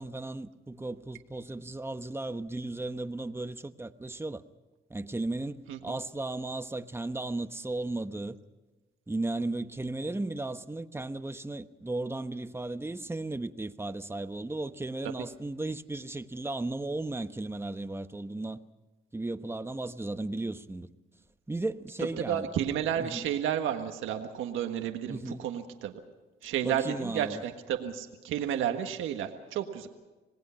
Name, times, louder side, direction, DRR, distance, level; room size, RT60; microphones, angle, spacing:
voice 1, 0.0-4.4 4.9-8.4 9.1-18.6 19.1-20.9 21.5-22.5 23.0-23.3 25.1-25.4 26.6-27.4, right 2 dB, 10° right, 1.0 m, -35 dB
voice 2, 22.3-25.9 26.4-29.9, right 9 dB, 90° right, 1.6 m, -32 dB
27.0 x 19.0 x 5.8 m
cardioid pair, 90°, 20 cm